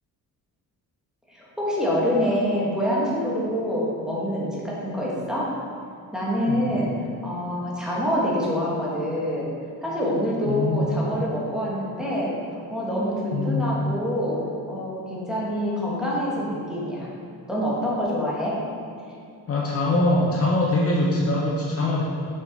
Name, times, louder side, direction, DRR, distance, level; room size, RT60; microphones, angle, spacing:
voice 1, 1.3-5.5 6.1-6.9 7.2-9.5 9.8-14.4 14.7-17.1 17.5-18.6, equal, ahead, -6 dB, 1.3 m, -26 dB
voice 2, 10.5-10.9 13.3-13.6 19.5-22.0, left 2 dB, 35° left, -3 dB, 0.6 m, -23 dB
6.4 x 5.5 x 3.9 m, 2.4 s
cardioid pair, 160°, 39 cm